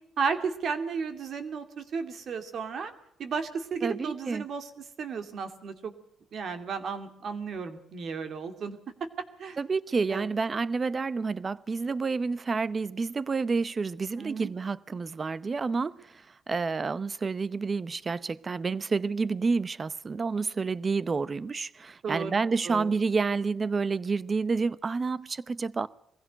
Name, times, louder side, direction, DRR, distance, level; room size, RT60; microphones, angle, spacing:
voice 1, 0.2-2.9 3.2-5.9 6.3-8.8 9.4-9.6 10.1-10.3 14.2-14.5 22.0-22.4 22.6-22.9, right 5 dB, 60° right, 2.4 m, -34 dB
voice 2, 3.8-4.4 9.6-16.0 16.5-25.9, right 4 dB, 35° right, 0.7 m, -29 dB
22.0 x 16.0 x 7.9 m
cardioid pair, 90°, 0 cm